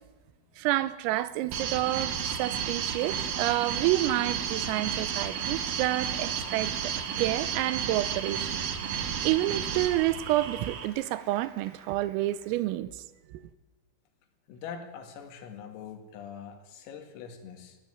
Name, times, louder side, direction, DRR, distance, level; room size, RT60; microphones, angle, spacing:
voice 1, 0.6-6.9 7.2-8.5 9.2-12.9 13.3-13.4, right 15 dB, 90° right, 3.5 m, -29 dB
Applause, 1.2-12.8, right 4 dB, 40° right, 3.4 m, -49 dB
sound 1, 1.5-10.9, right 7 dB, 70° right, 2.1 m, -32 dB
voice 2, 14.5-17.8, left 7 dB, 85° left, 4.7 m, -43 dB
19.5 x 13.5 x 9.9 m
omnidirectional pair, 5.9 m